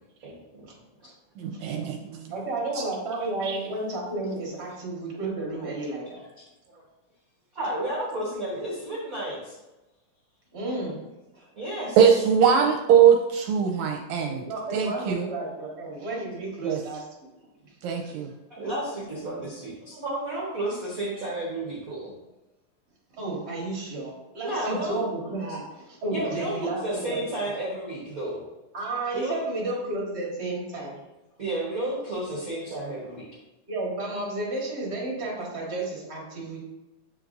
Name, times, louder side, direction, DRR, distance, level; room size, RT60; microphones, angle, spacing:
voice 1, 0.2-0.7 2.3-2.4 5.6-5.7 6.7-6.8 7.5-9.6 11.6-12.0 18.5-22.1 24.4-25.0 26.1-28.4 29.1-29.4 31.4-33.2, right 1 dB, 60° right, -6 dB, 0.9 m, -32 dB
voice 2, 1.4-2.3 3.4-3.6 12.0-14.4 14.7-15.3 16.6-16.8 17.8-18.3, right 7 dB, 80° right, 1 dB, 1.8 m, -21 dB
voice 3, 2.3-6.2 10.5-11.0 14.2-17.1 17.6-17.7 18.0-18.1 23.1-26.8 27.1-27.2 28.7-31.0 33.7-36.6, right 2 dB, 40° right, -3 dB, 1.0 m, -32 dB
8.1 x 4.6 x 2.6 m, 1.0 s
omnidirectional pair, 3.6 m